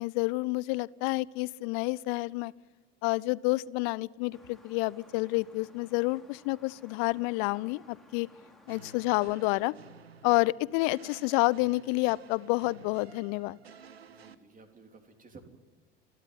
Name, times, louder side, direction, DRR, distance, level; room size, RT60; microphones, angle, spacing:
voice 1, 0.0-2.5 3.0-8.3 8.7-9.7 10.2-13.6, left 23 dB, 50° left, 23 dB, 0.7 m, -29 dB
sound 1, 4.3-9.7, left 1 dB, ahead, 3.1 m, -58 dB
sound 2, 8.7-14.4, right 6 dB, 80° right, 1.1 m, -53 dB
voice 2, 14.1-15.4, right 4 dB, 25° right, 5 dB, 3.7 m, -54 dB
30.0 x 12.5 x 9.6 m, 1.3 s
figure-of-eight pair, 65°, 31 cm